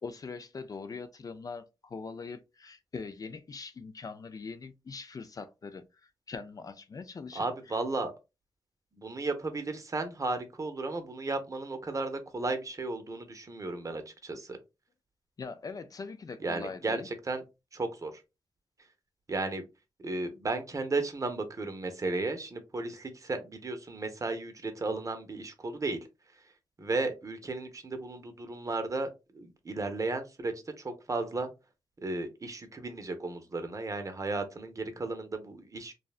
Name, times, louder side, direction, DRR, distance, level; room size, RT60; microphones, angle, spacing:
voice 1, 0.0-7.8 15.4-17.1, left 4 dB, 45° left, 0.4 m, -42 dB
voice 2, 7.3-8.1 9.0-14.6 16.4-17.4 17.7-18.1 19.3-19.6 20.0-26.0 26.8-31.5 32.0-35.9, right 3 dB, 40° right, 0.6 m, -34 dB
2.7 x 2.1 x 2.3 m
cardioid pair, 55°, 9 cm